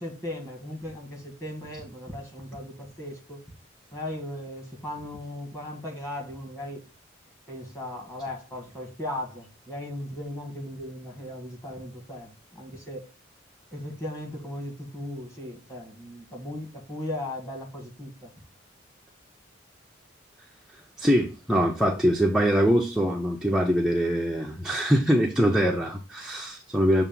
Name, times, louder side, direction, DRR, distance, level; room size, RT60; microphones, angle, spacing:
voice 1, 0.0-3.4 3.9-6.8 7.5-13.1 13.7-18.3, left 1 dB, 15° left, 1.9 m, -37 dB
voice 2, 21.0-27.0, equal, ahead, 0.5 m, -23 dB
7.0 x 2.5 x 5.3 m
head